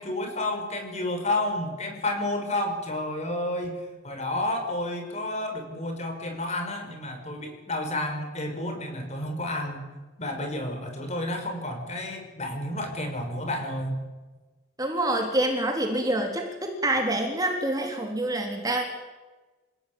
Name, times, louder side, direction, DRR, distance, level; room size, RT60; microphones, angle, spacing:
voice 1, 0.0-9.8 10.2-14.0, left 1 dB, 30° left, 4 dB, 5.6 m, -31 dB
voice 2, 14.8-18.8, right 1 dB, 15° right, 2 dB, 3.5 m, -26 dB
28.5 x 17.0 x 9.4 m, 1.2 s
head